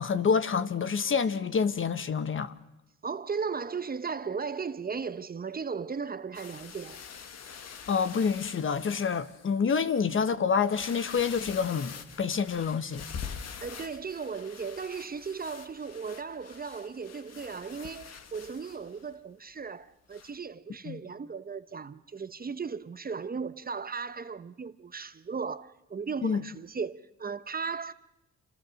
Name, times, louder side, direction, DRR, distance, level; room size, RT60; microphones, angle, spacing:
voice 1, 0.0-2.5 7.9-13.1 20.9-21.0 26.2-26.4, left 6 dB, 40° left, 1.3 m, -27 dB
voice 2, 3.0-7.0 13.6-27.9, right 5 dB, 30° right, 0.9 m, -36 dB
sound 1, 6.3-9.5 10.1-10.2 10.6-19.1 20.1-20.4, left 6 dB, 60° left, 1.8 m, -45 dB
28.0 x 26.5 x 6.4 m
cardioid pair, 90°, 30 cm